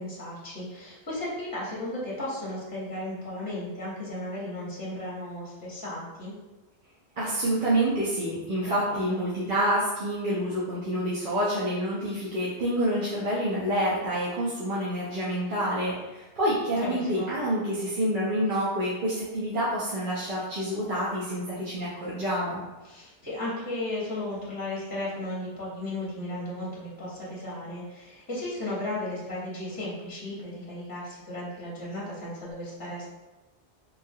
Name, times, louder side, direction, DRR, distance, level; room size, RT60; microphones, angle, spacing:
voice 1, 0.0-6.3 8.7-8.8 9.1-9.2 16.8-17.3 22.8-33.1, left 1 dB, 20° left, -7 dB, 0.8 m, -35 dB
voice 2, 7.2-22.6, right 1 dB, 55° right, -8 dB, 0.7 m, -28 dB
3.2 x 2.3 x 2.7 m, 1.1 s
omnidirectional pair, 1.2 m